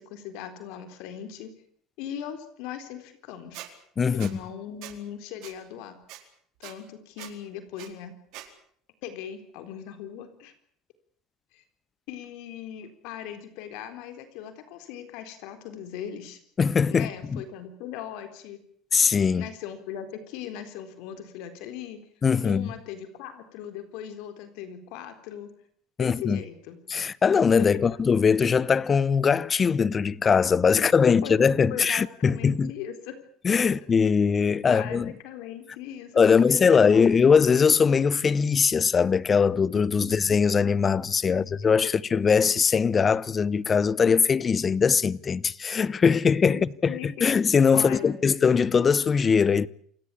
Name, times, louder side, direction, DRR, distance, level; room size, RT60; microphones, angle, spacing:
voice 1, 0.0-1.5 2.0-3.7 4.1-6.0 6.6-8.2 9.0-10.5 11.5-11.6 12.1-16.4 16.9-18.6 19.4-22.0 22.4-25.5 26.0-26.8 27.6-28.0 30.8-31.4 31.7-33.2 33.7-33.8 34.6-37.2 40.0-40.2 41.3-41.5 41.8-41.9 46.5-47.3 47.7-48.1, left 9 dB, 75° left, 3.9 m, -39 dB
Squeak, 3.5-3.7 4.2-4.3 4.8-5.0 5.4-5.5 6.1-6.2 6.6-6.7 7.2-7.3 7.8-7.9 8.3-8.5, right 16 dB, 70° right, 4.3 m, -42 dB
voice 2, 4.0-4.4 16.6-17.4 18.9-19.4 22.2-22.7 26.0-26.4 26.9-32.7 33.4-35.1 36.2-49.7, left 6 dB, 30° left, 0.9 m, -21 dB
28.0 x 17.0 x 8.5 m
supercardioid pair, 110°, 0 cm